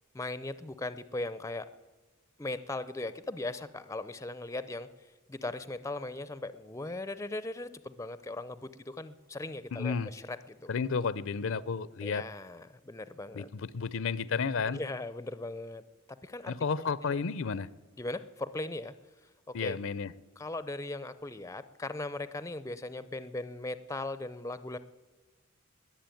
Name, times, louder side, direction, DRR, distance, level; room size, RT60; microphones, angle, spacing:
voice 1, 0.1-1.7 2.4-4.9 5.3-10.7 12.0-13.5 14.7-15.8 16.2-17.2 18.0-18.9 19.5-19.8 20.4-24.8, left 2 dB, 15° left, 14 dB, 0.5 m, -38 dB
voice 2, 9.7-10.1 10.7-12.2 13.3-14.8 16.5-17.7 19.5-20.1, left 5 dB, 60° left, 18 dB, 0.5 m, -32 dB
21.0 x 7.6 x 9.1 m, 1.3 s
head